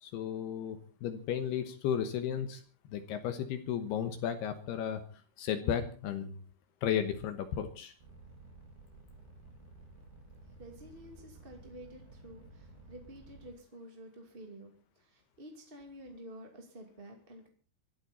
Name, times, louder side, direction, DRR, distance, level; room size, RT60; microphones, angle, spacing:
voice 1, 0.0-2.6 2.9-5.0 5.4-6.3 6.8-7.9, left 9 dB, 75° left, 8 dB, 3.1 m, -34 dB
sound 1, 8.0-13.5, right 2 dB, 75° right, 8.0 m, -54 dB
voice 2, 10.6-17.5, right 1 dB, 20° right, 2 dB, 1.8 m, -50 dB
24.0 x 13.0 x 4.2 m, 0.37 s
omnidirectional pair, 4.9 m